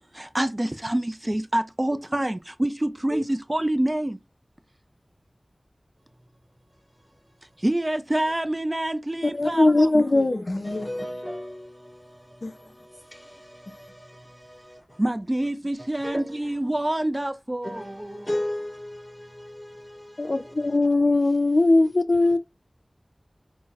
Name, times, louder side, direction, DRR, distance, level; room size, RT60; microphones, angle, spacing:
voice 1, 0.1-4.2 7.6-10.5 15.0-18.4, right 1 dB, 25° right, 0.3 m, -27 dB
voice 2, 9.3-10.9 12.4-12.5 20.2-22.4, left 2 dB, 60° left, 0.5 m, -20 dB
voice 3, 10.6-14.5 16.0-16.4 17.6-20.8, left 1 dB, 20° left, 2.1 m, -36 dB
4.0 x 2.0 x 2.4 m
wide cardioid pair, 60°, 0 cm